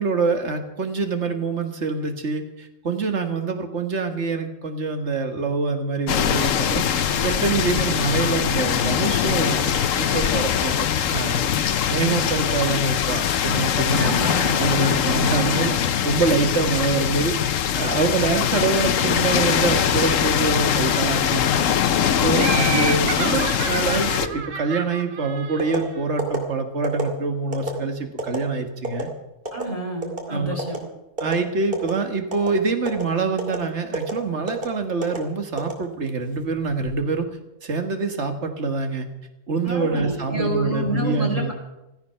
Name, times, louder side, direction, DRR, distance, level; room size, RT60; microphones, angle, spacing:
voice 1, 0.0-11.5 11.9-17.3 17.8-21.4 22.2-29.1 30.3-30.6 31.2-37.3 37.6-39.1 39.5-41.5, right 4 dB, 60° right, 6 dB, 1.9 m, -25 dB
sound 1, 6.1-24.3, left 9 dB, 85° left, 1.2 m, -22 dB
voice 2, 14.0-15.1 22.4-22.8 23.8-24.1 29.5-30.8 39.7-41.5, right 1 dB, 25° right, 0 dB, 3.1 m, -29 dB
Laughter, 22.3-26.0, right 6 dB, 80° right, 1.5 m, -30 dB
sound 2, 25.6-25.8 26.2-26.4 26.8-27.1 27.5-27.7 28.2-28.4 28.8-29.0 29.5-29.6 30.0-30.3 30.6-30.8 31.2-31.4 31.7-32.0 32.3-32.5 32.9-33.0 33.4-33.6 33.9-34.1 34.5-34.7 35.0-35.2 35.6-36.2 36.7-36.9, right 2 dB, 45° right, 2.8 m, -27 dB
16.0 x 14.5 x 5.7 m, 0.94 s
omnidirectional pair, 1.3 m